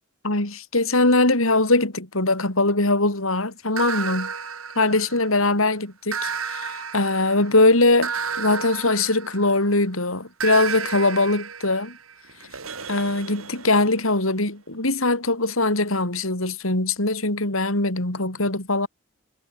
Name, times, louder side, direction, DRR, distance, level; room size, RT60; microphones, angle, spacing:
voice 1, 0.2-4.3 4.7-8.1 8.4-12.0 12.9-18.9, left 2 dB, 75° left, 5.0 m, -21 dB
sound 1, 3.8-5.5 6.1-9.8 10.4-14.1, right 6 dB, 90° right, 6.4 m, -32 dB
head